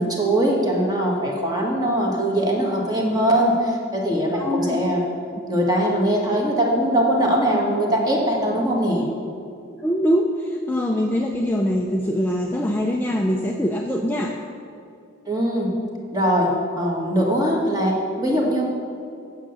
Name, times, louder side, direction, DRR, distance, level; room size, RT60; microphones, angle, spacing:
voice 1, 0.0-5.0 5.5-9.0 15.3-15.7 16.1-16.5 16.8-18.6, right 1 dB, 20° right, -1 dB, 1.5 m, -21 dB
voice 2, 4.3-4.8 9.8-14.4, equal, 10° left, 0 dB, 0.4 m, -23 dB
8.7 x 6.7 x 7.0 m, 2.4 s
head